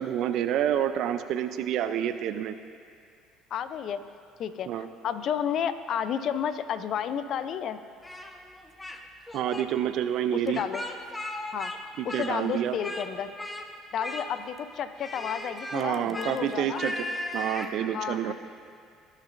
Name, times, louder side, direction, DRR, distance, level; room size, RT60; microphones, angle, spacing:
voice 1, 0.0-2.5 4.7-4.9 9.3-10.6 12.0-12.8 15.7-17.0 17.3-18.3, right 10 dB, 65° right, 10 dB, 0.4 m, -28 dB
voice 2, 3.5-4.0 4.4-7.8 10.3-10.8 11.5-13.3 13.9-16.8 17.9-18.3, left 8 dB, 55° left, 12 dB, 0.5 m, -32 dB
Speech, 8.0-9.0 9.3-9.7 10.5-11.8 12.1-13.1 13.4-13.7 14.0-14.6 15.0-17.7, left 1 dB, 15° left, 0.9 m, -37 dB
19.0 x 6.5 x 2.6 m, 2.3 s
hypercardioid pair, 65°, 0 cm